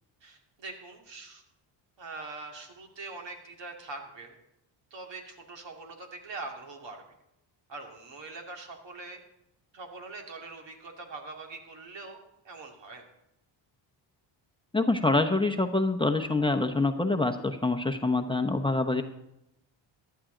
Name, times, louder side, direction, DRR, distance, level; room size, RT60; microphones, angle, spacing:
voice 1, 0.2-1.4 2.0-4.4 4.9-7.0 7.7-9.2 9.7-12.2 12.4-13.0, right 3 dB, 65° right, 2 dB, 2.5 m, -43 dB
voice 2, 14.7-19.0, left 2 dB, 10° left, 3 dB, 0.8 m, -26 dB
15.0 x 11.5 x 3.8 m, 0.86 s
cardioid pair, 80°, 48 cm